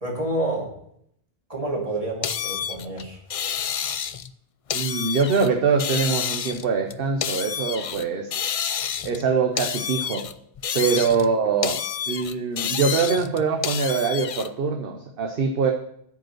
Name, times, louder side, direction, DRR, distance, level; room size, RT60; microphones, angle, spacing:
voice 1, 0.0-0.7 1.5-3.2, right 1 dB, 35° right, -2 dB, 2.6 m, -28 dB
sound 1, 2.2-4.3 4.7-5.5 5.8-8.1 8.3-9.3 9.6-11.3 11.6-14.5, left 8 dB, 60° left, 0.3 m, -29 dB
voice 2, 4.7-8.6 9.0-10.2 10.7-11.8 12.1-15.7, right 5 dB, 60° right, 3 dB, 1.0 m, -23 dB
9.0 x 5.2 x 7.8 m, 0.71 s
omnidirectional pair, 1.1 m